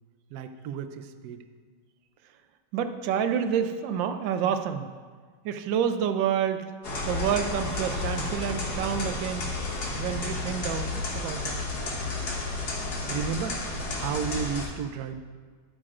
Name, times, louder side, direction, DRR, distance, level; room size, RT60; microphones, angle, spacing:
voice 1, 0.3-1.4 13.1-13.6 13.9-15.2, right 7 dB, 70° right, 7 dB, 1.0 m, -33 dB
voice 2, 2.7-4.9 5.4-6.6 7.1-9.5 10.0-11.6, right 8 dB, 85° right, 9 dB, 1.3 m, -28 dB
sound 1, 6.8-14.7, left 2 dB, 60° left, 1.8 m, -32 dB
12.0 x 8.7 x 2.5 m, 1.5 s
omnidirectional pair, 2.0 m